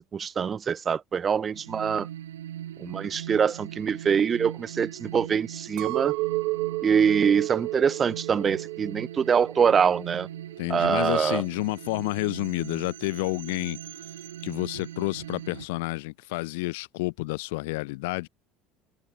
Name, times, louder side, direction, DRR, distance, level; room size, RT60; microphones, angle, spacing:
voice 1, 0.0-2.1 2.8-6.1 6.8-10.3 10.7-11.4, right 7 dB, 30° right, 2.0 m, -24 dB
sound 1, 1.5-15.7, right 11 dB, 70° right, 7.6 m, -40 dB
Chink clink, 5.8-10.1 10.5-11.1, right 23 dB, 55° right, 4.7 m, -32 dB
voice 2, 10.6-13.8 14.4-18.3, left 23 dB, 60° left, 4.4 m, -30 dB
figure-of-eight pair, 65°, 0 cm